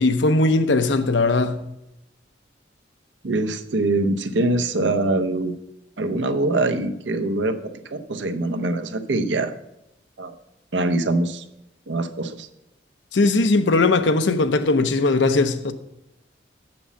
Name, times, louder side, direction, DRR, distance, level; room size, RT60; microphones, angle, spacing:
voice 1, 0.0-1.6 13.1-15.7, left 3 dB, 85° left, 0.7 m, -19 dB
voice 2, 3.2-5.5 6.0-9.5 10.2-10.3 10.7-11.4 11.9-12.5, right 2 dB, 85° right, 0.8 m, -23 dB
7.3 x 6.1 x 7.2 m
head